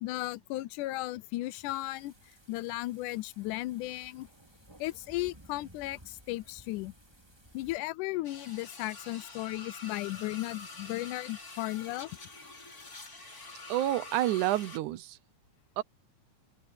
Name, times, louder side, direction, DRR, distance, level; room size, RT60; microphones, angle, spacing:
voice 1, 0.0-2.1 2.5-4.3 4.8-6.9 7.5-12.1, left 18 dB, 85° left, 2.1 m, -35 dB
sound 1, 1.6-7.8, right 1 dB, 10° right, 3.1 m, -57 dB
sound 2, 8.2-14.8, left 3 dB, 30° left, 4.1 m, -46 dB
voice 2, 13.7-15.2 15.8-15.9, right 14 dB, 80° right, 2.2 m, -29 dB
omnidirectional pair, 3.5 m